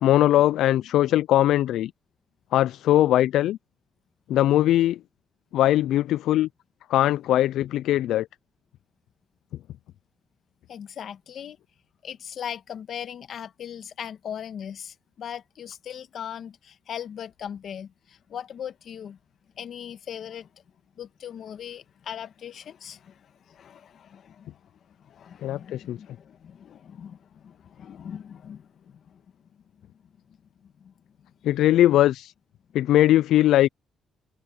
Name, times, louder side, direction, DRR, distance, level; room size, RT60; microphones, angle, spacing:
voice 1, 0.0-1.9 2.5-3.6 4.3-5.0 5.5-6.5 6.9-8.3 25.4-26.0 31.4-32.3 32.7-33.7, left 13 dB, 80° left, 0.3 m, -20 dB
voice 2, 10.7-11.6 12.0-19.2 19.5-20.5 21.0-29.2 30.6-30.9, left 9 dB, 60° left, 1.5 m, -39 dB
cardioid pair, 90°, 0 cm